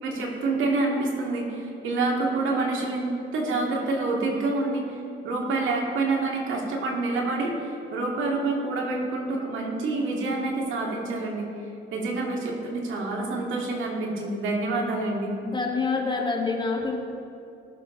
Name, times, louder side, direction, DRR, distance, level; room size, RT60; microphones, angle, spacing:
voice 1, 0.0-5.0 5.2-11.4 11.9-15.3, right 3 dB, 80° right, -1 dB, 2.3 m, -27 dB
voice 2, 15.4-17.0, left 4 dB, 25° left, 0 dB, 2.0 m, -26 dB
19.5 x 7.0 x 3.9 m, 2.7 s
cardioid pair, 90°, 20 cm